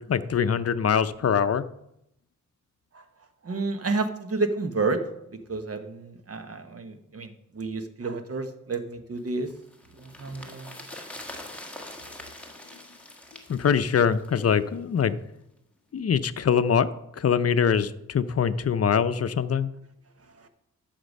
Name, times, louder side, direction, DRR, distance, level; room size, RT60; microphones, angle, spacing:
voice 1, 0.0-1.7 13.5-15.2 15.9-19.7, left 7 dB, 50° left, 12 dB, 0.6 m, -23 dB
voice 2, 3.4-5.0 5.5-9.5 10.0-10.8, right 3 dB, 45° right, 8 dB, 1.1 m, -30 dB
sound 1, 9.3-14.7 15.0-15.1, left 1 dB, 5° left, 1.6 m, -43 dB
11.5 x 6.7 x 5.3 m, 0.80 s
wide cardioid pair, 105°, 32 cm